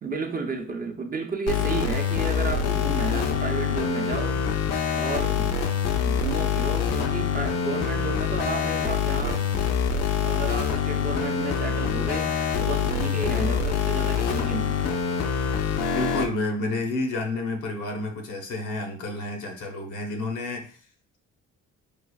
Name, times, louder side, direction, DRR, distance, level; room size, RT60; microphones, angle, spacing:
voice 1, 0.0-4.4 4.9-5.4 6.0-9.4 10.2-14.8, right 4 dB, 30° right, 0.6 m, -32 dB
sound 1, 1.5-16.3, left 7 dB, 60° left, 0.6 m, -25 dB
voice 2, 13.3-13.6 15.9-20.8, left 2 dB, 80° left, 0.9 m, -30 dB
4.8 x 2.5 x 2.3 m
cardioid pair, 90°, 30 cm